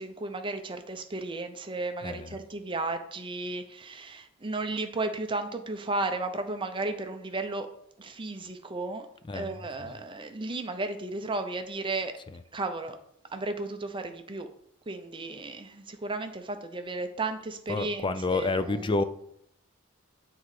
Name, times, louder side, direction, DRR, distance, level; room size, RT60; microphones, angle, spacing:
voice 1, 0.0-7.7 8.0-9.1 9.3-12.2 12.5-13.0 13.3-14.5 14.9-18.9, right 2 dB, 25° right, 0.6 m, -34 dB
voice 2, 2.0-2.4 9.2-9.9 17.7-19.0, left 3 dB, 25° left, 0.4 m, -29 dB
7.8 x 3.8 x 4.8 m
head